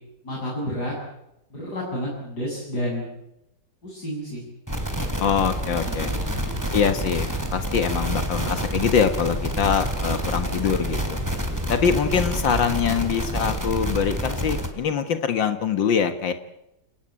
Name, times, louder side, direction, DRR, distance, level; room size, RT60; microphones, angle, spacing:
voice 1, 0.2-0.9 1.5-3.1 3.8-4.4 5.8-6.6, equal, 55° left, -5 dB, 8.5 m, -31 dB
sound 1, 4.7-14.7, right 1 dB, 10° right, 3.5 m, -27 dB
voice 2, 5.2-6.1 6.7-11.2 11.7-16.3, left 7 dB, 80° left, 8 dB, 2.2 m, -24 dB
29.0 x 18.5 x 8.8 m, 0.87 s
omnidirectional pair, 2.0 m